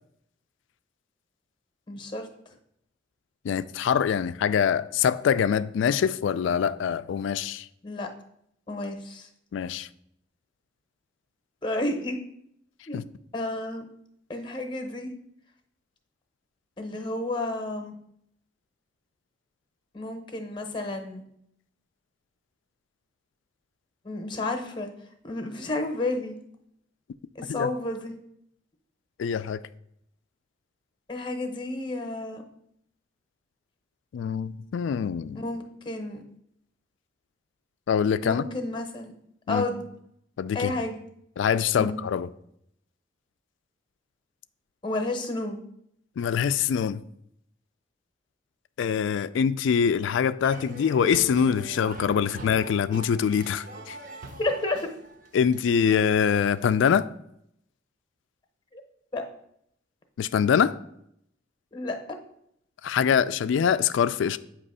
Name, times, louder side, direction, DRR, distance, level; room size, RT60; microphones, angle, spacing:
voice 1, 1.9-2.3 7.8-8.1 8.7-9.3 11.6-12.2 12.9-13.0 13.3-13.8 14.3-15.1 16.8-18.0 19.9-21.2 24.0-24.9 25.2-26.4 27.3-28.1 31.1-32.4 35.3-36.2 38.2-39.1 39.5-39.8 40.5-41.0 41.7-42.0 44.8-45.6 54.4-54.8 58.7-58.8 59.1-59.2 61.7-62.2, left 2 dB, 25° left, 0.8 m, -31 dB
voice 2, 3.4-7.7 9.5-9.9 12.9-13.0 27.5-27.7 29.2-29.6 34.1-35.4 37.9-38.4 39.5-39.7 40.4-40.8 41.4-42.3 46.2-47.0 48.8-54.0 55.3-57.1 60.2-60.8 62.8-64.4, left 7 dB, 70° left, 0.3 m, -24 dB
sound 1, 50.4-56.7, right 1 dB, 40° right, 0.7 m, -42 dB
8.4 x 2.9 x 5.4 m
head